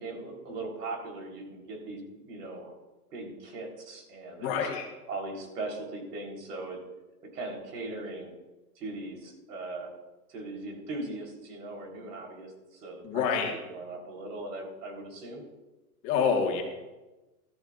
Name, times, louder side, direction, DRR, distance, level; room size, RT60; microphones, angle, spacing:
voice 1, 0.0-2.8 3.1-4.7 5.1-6.8 7.2-8.3 8.8-9.9 10.3-15.4, right 2 dB, 80° right, 1 dB, 4.2 m, -39 dB
voice 2, 4.4-4.9 13.0-13.5 16.0-16.6, left 6 dB, 30° left, 0 dB, 1.8 m, -27 dB
15.5 x 13.5 x 2.6 m, 1.1 s
hypercardioid pair, 160°, 47 cm